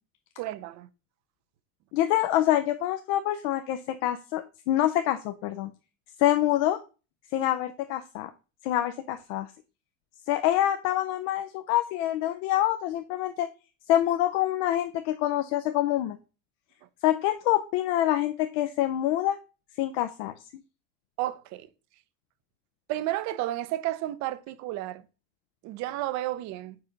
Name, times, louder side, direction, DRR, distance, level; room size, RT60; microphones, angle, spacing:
voice 1, 0.4-0.9 21.2-21.7 22.9-25.0 25.6-26.8, right 15 dB, 50° right, 0.6 m, -32 dB
voice 2, 1.9-5.7 6.2-6.8 7.3-8.3 8.6-9.5 10.3-13.5 13.9-16.2 17.0-19.4 19.8-20.3, left 13 dB, 75° left, 0.6 m, -26 dB
4.8 x 4.2 x 5.1 m
cardioid pair, 145°, 36 cm